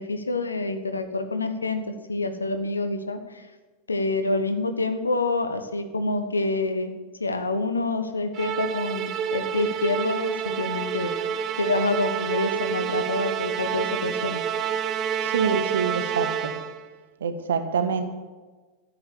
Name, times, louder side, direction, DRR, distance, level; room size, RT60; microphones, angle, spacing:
voice 1, 0.0-3.4 3.9-6.9 7.2-11.1 11.6-14.4, left 2 dB, 80° left, 9 dB, 1.3 m, -27 dB
Musical instrument, 8.3-16.9, right 8 dB, 35° right, 0.9 m, -28 dB
voice 2, 15.2-16.5 17.2-18.0, right 6 dB, 65° right, 8 dB, 1.5 m, -26 dB
14.0 x 9.0 x 7.1 m, 1.3 s
figure-of-eight pair, 90°, 0 cm